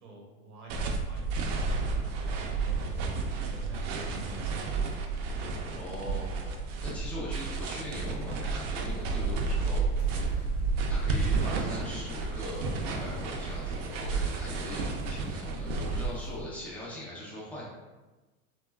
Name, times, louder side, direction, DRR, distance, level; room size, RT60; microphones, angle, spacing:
voice 1, 0.0-4.7, right 2 dB, 85° right, -1 dB, 0.9 m, -46 dB
sound 1, 0.7-16.1, right 4 dB, 60° right, 0.5 m, -31 dB
voice 2, 5.7-9.8 10.3-10.5 10.9-17.7, left 1 dB, 5° left, -6 dB, 0.3 m, -41 dB
sound 2, 7.3-16.4, left 1 dB, 25° left, 0.8 m, -42 dB
3.0 x 2.2 x 2.2 m, 1.2 s
hypercardioid pair, 110°, 43 cm